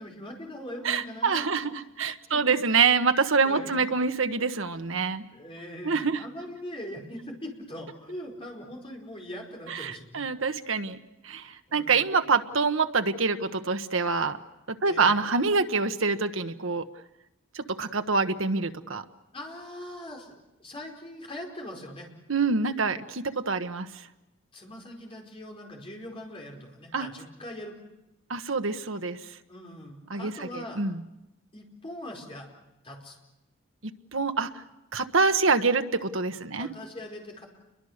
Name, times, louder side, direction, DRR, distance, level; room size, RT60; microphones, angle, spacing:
voice 1, 0.0-1.7 2.3-2.4 3.4-3.8 5.3-10.2 11.7-12.0 14.8-15.2 19.3-22.1 24.5-27.8 29.5-30.8 31.5-32.5 32.8-33.2 36.5-37.5, left 1 dB, 25° left, 0 dB, 4.7 m, -41 dB
voice 2, 0.8-5.2 5.8-6.2 9.7-11.0 11.2-14.4 14.7-16.9 17.5-19.0 22.3-24.1 26.9-27.1 28.3-29.4 30.1-31.0 34.1-34.6 34.9-36.7, right 4 dB, 80° right, 8 dB, 1.2 m, -26 dB
29.5 x 23.0 x 6.6 m, 0.97 s
head